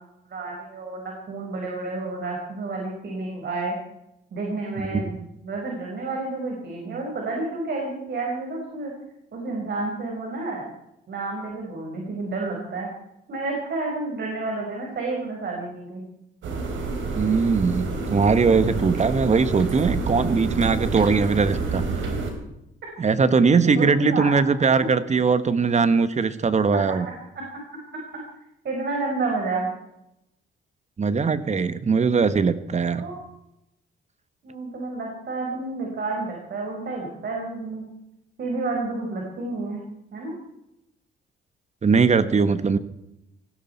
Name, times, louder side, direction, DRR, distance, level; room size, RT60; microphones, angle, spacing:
voice 1, 0.3-3.7 4.3-5.1 5.4-8.9 9.3-10.6 11.1-12.9 13.3-16.0 23.8-24.6 26.9-27.0 27.3-27.4 28.6-29.7 32.9-33.2 34.4-37.8 38.4-39.8 40.1-40.3, right 3 dB, 55° right, 0 dB, 5.2 m, -30 dB
sound 1, 16.4-22.3, right 3 dB, 75° right, 4.2 m, -28 dB
voice 2, 17.1-21.8 23.0-27.1 31.0-33.0 41.8-42.8, right 5 dB, 35° right, 12 dB, 1.4 m, -20 dB
19.0 x 16.0 x 4.5 m, 0.85 s
cardioid pair, 90°, 20 cm